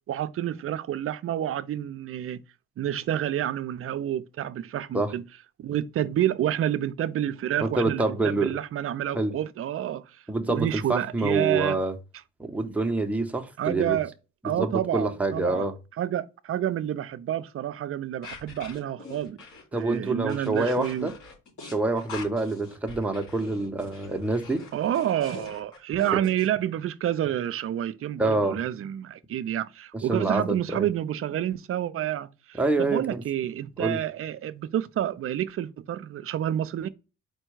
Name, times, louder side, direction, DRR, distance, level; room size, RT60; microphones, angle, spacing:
voice 1, 0.1-2.4 2.8-5.2 5.6-10.2 10.5-11.8 13.6-14.1 14.4-15.7 16.0-19.4 19.7-21.1 24.7-36.9, right 11 dB, 50° right, 0.4 m, -29 dB
voice 2, 7.6-8.6 9.1-9.3 10.3-11.9 12.4-14.0 14.4-15.7 19.7-21.1 21.6-24.7 26.1-26.2 28.2-28.6 29.9-30.9 32.5-33.2 33.8-34.0, right 2 dB, 5° right, 0.6 m, -26 dB
sound 1, 18.2-26.5, left 3 dB, 85° left, 2.5 m, -44 dB
4.6 x 2.2 x 4.5 m
cardioid pair, 90°, 30 cm